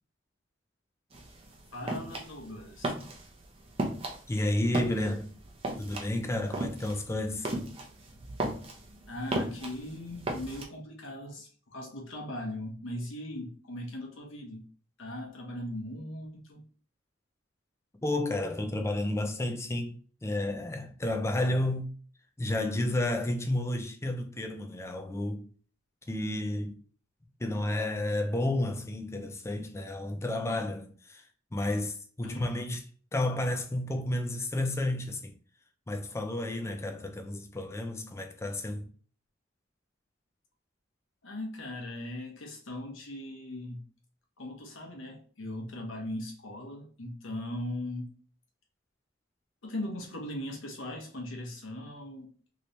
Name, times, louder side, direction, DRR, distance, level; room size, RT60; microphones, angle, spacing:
sound 1, 1.1-10.6, right 1 dB, 30° right, 0.6 m, -36 dB
voice 1, 1.7-2.9 9.1-14.6 15.0-16.6 32.2-32.7 41.2-43.8 44.4-48.2 49.6-52.3, left 1 dB, 80° left, 0.9 m, -39 dB
voice 2, 4.3-5.3 5.8-7.5 18.0-20.0 20.2-21.9 22.4-25.5 26.1-26.8 27.4-31.2 31.5-32.8 33.1-35.3 35.9-38.9, left 1 dB, 15° left, 0.4 m, -31 dB
3.2 x 3.0 x 2.6 m
head